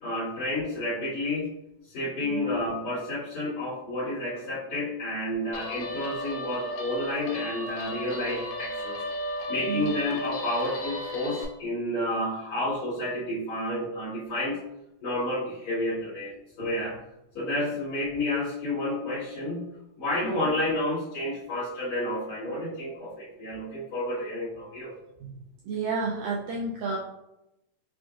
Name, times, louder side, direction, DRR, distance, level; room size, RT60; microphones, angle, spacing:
voice 1, 0.0-1.5 1.9-9.0 9.5-14.6 15.0-17.0 17.3-19.7 20.0-24.9, left 1 dB, 60° left, -10 dB, 2.6 m, -30 dB
Guitar, 5.5-11.4, left 1 dB, 80° left, 2.2 m, -35 dB
voice 2, 25.6-27.0, right 4 dB, 90° right, -4 dB, 1.6 m, -31 dB
6.0 x 2.5 x 2.4 m, 0.87 s
omnidirectional pair, 3.7 m